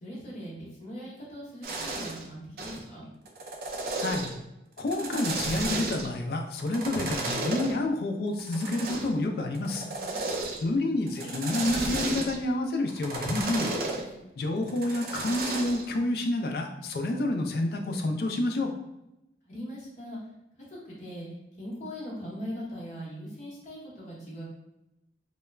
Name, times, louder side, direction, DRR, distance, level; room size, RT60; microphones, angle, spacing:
voice 1, 0.0-3.1 10.0-10.4 14.0-14.1 19.5-20.2 20.7-21.3 21.6-24.5, equal, 40° left, -7 dB, 0.8 m, -40 dB
sound 1, 1.6-2.2 2.6-2.8 3.3-4.4 4.8-6.2 6.6-7.7 8.4-9.2 9.5-10.7 11.1-12.4 12.9-14.0 14.7-15.8, right 2 dB, 55° right, 0.4 m, -33 dB
voice 2, 4.0-4.3 4.8-9.9 10.6-13.7 14.4-18.7, left 2 dB, 55° left, 3 dB, 0.3 m, -29 dB
2.3 x 2.0 x 3.1 m, 0.90 s
head